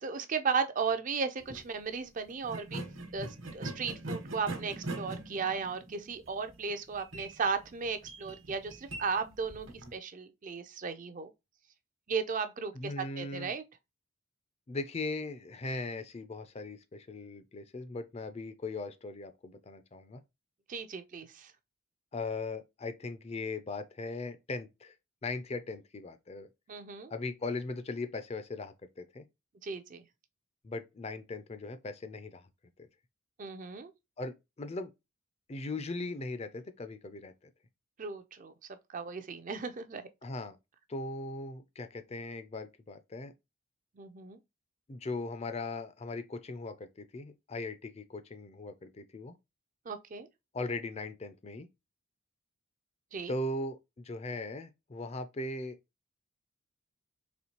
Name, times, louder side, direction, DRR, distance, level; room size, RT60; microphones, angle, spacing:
voice 1, 0.0-2.8 3.1-11.3 12.1-13.6 20.7-21.5 26.7-27.1 29.6-30.0 33.4-33.9 38.0-38.5 38.9-40.0 44.0-44.4 49.9-50.3 53.1-53.3, right 5 dB, 35° right, 0.4 m, -35 dB
sound 1, 1.4-1.7 2.4-9.9, right 2 dB, 60° right, 1.1 m, -42 dB
voice 2, 12.7-13.5 14.7-20.2 22.1-24.9 25.2-26.5 27.1-29.2 30.6-32.4 32.8-32.9 34.2-34.9 35.5-37.3 40.2-40.6 40.9-43.3 44.9-49.3 50.5-51.7 53.3-55.8, left 2 dB, 30° left, 0.4 m, -39 dB
4.2 x 3.1 x 2.9 m
head